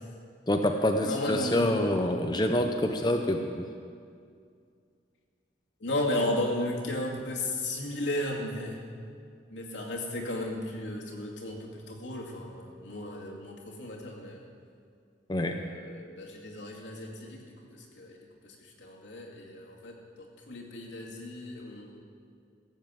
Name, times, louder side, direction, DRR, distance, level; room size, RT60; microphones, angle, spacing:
voice 1, 0.5-3.6 15.3-15.6, left 1 dB, 20° left, 4 dB, 0.6 m, -26 dB
voice 2, 1.0-2.0 5.8-8.8 9.5-14.5 15.4-17.4 17.7-18.2 18.4-22.0, left 1 dB, 80° left, -1 dB, 2.3 m, -34 dB
16.5 x 7.4 x 7.6 m, 2.3 s
head